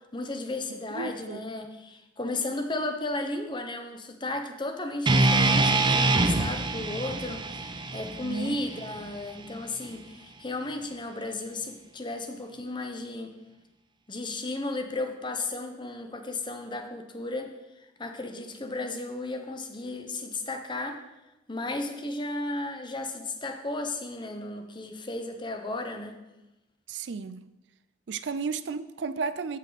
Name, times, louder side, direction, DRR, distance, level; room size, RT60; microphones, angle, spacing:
voice 1, 0.1-13.3 14.1-17.5 17.8-21.0 21.5-26.2, left 2 dB, 25° left, 0.9 m, -34 dB
voice 2, 0.9-1.4 8.2-8.6 26.9-27.5 28.1-29.6, right 5 dB, 75° right, 0.4 m, -33 dB
sound 1, 5.1-9.2, right 2 dB, 25° right, 0.6 m, -25 dB
14.0 x 5.4 x 4.1 m
head